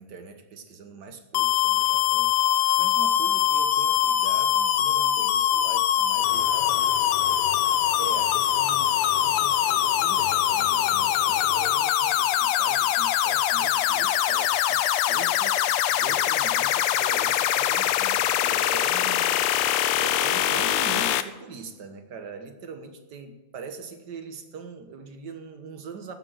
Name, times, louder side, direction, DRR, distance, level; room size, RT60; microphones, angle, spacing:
voice 1, 0.0-19.5 20.0-26.1, right 4 dB, 55° right, 7 dB, 1.8 m, -42 dB
sound 1, 1.3-21.2, left 11 dB, 80° left, 1.6 m, -23 dB
sound 2, 6.2-11.8, left 6 dB, 60° left, 1.4 m, -41 dB
15.5 x 6.8 x 9.1 m, 1.2 s
omnidirectional pair, 2.4 m